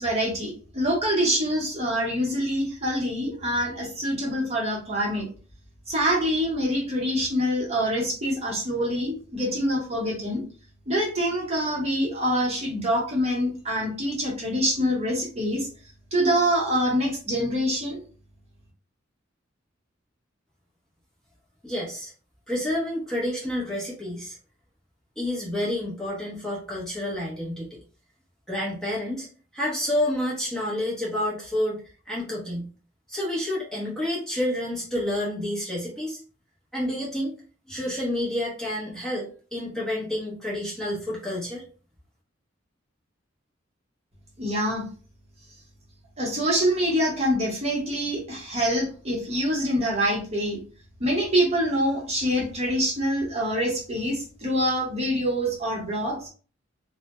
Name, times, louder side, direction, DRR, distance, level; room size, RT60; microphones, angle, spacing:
voice 1, 0.0-5.3 5.9-10.4 10.9-15.7 16.1-18.0 44.4-44.8 46.2-50.6 51.0-56.3, equal, 35° right, -3 dB, 0.8 m, -25 dB
voice 2, 21.6-22.1 22.5-24.4 25.2-27.8 28.5-29.3 29.5-31.8 32.1-32.7 33.1-36.2 36.7-37.4 37.7-41.6, left 1 dB, 5° left, -8 dB, 0.6 m, -29 dB
2.1 x 2.0 x 2.9 m, 0.40 s
head